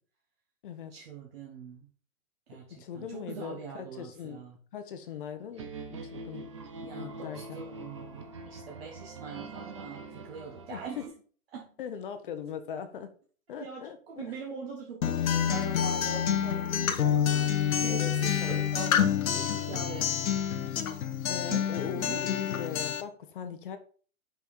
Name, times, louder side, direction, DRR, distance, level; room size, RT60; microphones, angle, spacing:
voice 1, 0.9-1.9 2.5-4.6 6.8-11.0 11.5-11.7 13.6-20.1 21.5-22.2, right 5 dB, 45° right, -1 dB, 1.6 m, -43 dB
voice 2, 2.7-4.4 4.7-6.5 6.9-7.4 10.7-11.1 11.8-13.1 13.5-14.0 14.2-14.4 17.9-18.1 18.4-18.6 21.3-23.8, left 7 dB, 40° left, 9 dB, 0.9 m, -39 dB
sound 1, 5.6-11.1, right 3 dB, 25° right, 0.5 m, -43 dB
Acoustic guitar, 15.0-23.0, left 8 dB, 80° left, 1.2 m, -28 dB
6.1 x 5.5 x 4.3 m, 0.42 s
hypercardioid pair, 170°, 41 cm